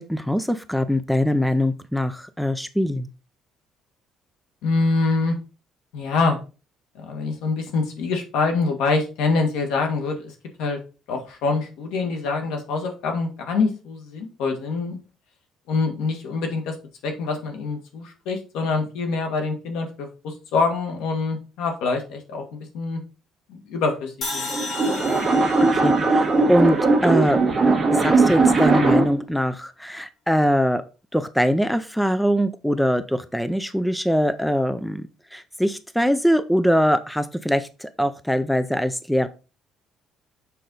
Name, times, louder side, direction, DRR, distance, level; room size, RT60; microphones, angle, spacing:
voice 1, 0.0-3.1 25.7-26.8 27.0-27.4 27.9-30.8 31.1-39.3, equal, ahead, 11 dB, 0.4 m, -22 dB
voice 2, 4.6-5.4 5.9-6.4 7.0-10.8 11.1-15.0 15.7-16.8 17.0-23.0 23.5-24.5, left 4 dB, 90° left, 4 dB, 1.8 m, -25 dB
sound 1, 24.2-27.4, left 2 dB, 45° left, 2.1 m, -34 dB
sound 2, 24.3-29.2, right 3 dB, 20° right, 1.6 m, -19 dB
6.7 x 4.4 x 3.9 m, 0.32 s
cardioid pair, 165°, 0 cm